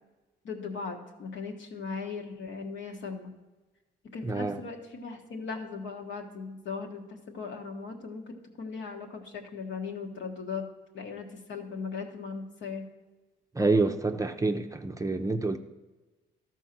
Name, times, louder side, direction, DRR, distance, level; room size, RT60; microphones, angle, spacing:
voice 1, 0.4-3.3 4.1-10.7 10.9-12.9, left 5 dB, 70° left, 2 dB, 1.4 m, -38 dB
voice 2, 4.2-4.6 13.5-15.6, right 3 dB, 15° right, 6 dB, 0.5 m, -27 dB
13.0 x 4.6 x 5.9 m, 1.2 s
cardioid pair, 90°, 20 cm